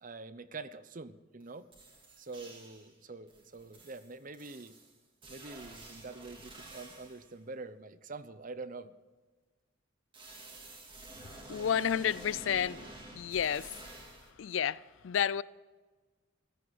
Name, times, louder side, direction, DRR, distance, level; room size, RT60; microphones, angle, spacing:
voice 1, 0.0-1.7 2.2-4.7 5.3-8.9, right 3 dB, 45° right, 0.7 m, -45 dB
sound 1, 1.4-1.5 1.7-2.9 3.3-7.3 10.1-14.3, right 2 dB, 25° right, 2.5 m, -50 dB
voice 2, 11.5-12.8 13.1-13.7 14.4-15.4, left 8 dB, 75° left, 0.4 m, -30 dB
15.5 x 13.5 x 6.1 m
head